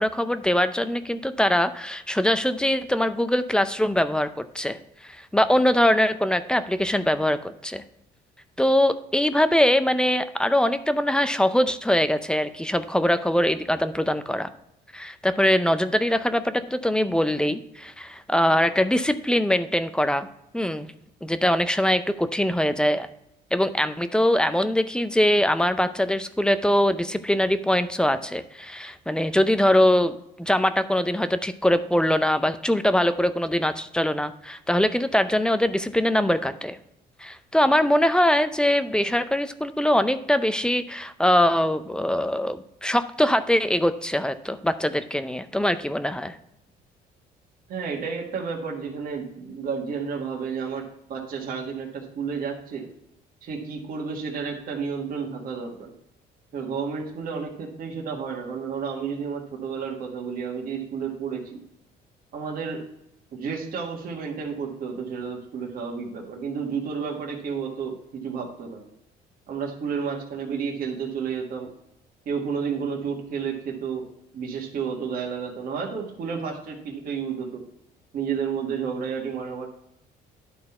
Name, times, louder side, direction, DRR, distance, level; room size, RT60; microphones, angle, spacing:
voice 1, 0.0-4.8 5.0-7.8 8.6-14.5 14.9-20.3 20.5-20.9 21.2-23.1 23.5-36.8 37.2-46.4, left 1 dB, 5° left, 11 dB, 0.5 m, -22 dB
voice 2, 47.7-52.9 53.4-55.9 56.5-61.6 62.3-62.9 63.3-68.0 68.2-68.8 69.5-71.7 72.2-77.6 78.1-79.7, right 6 dB, 60° right, 0 dB, 1.6 m, -31 dB
11.0 x 4.0 x 4.3 m, 0.79 s
cardioid pair, 110°, 17 cm